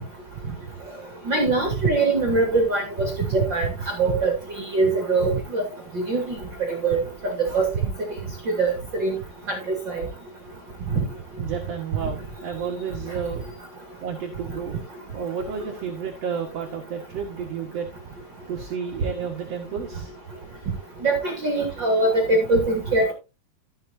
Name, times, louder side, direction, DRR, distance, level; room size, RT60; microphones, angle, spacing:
voice 1, 1.3-3.7 4.0-4.3 4.7-5.6 6.1-6.2 6.8-7.0 7.5-7.7 8.6-8.7 9.0-9.1 9.7-10.0 21.0-23.1, right 3 dB, 30° right, 2 dB, 3.0 m, -22 dB
voice 2, 11.4-13.4 14.0-14.8 15.1-17.9 18.5-20.1, right 7 dB, 50° right, 1 dB, 2.5 m, -31 dB
14.5 x 8.0 x 2.8 m, 0.28 s
omnidirectional pair, 4.3 m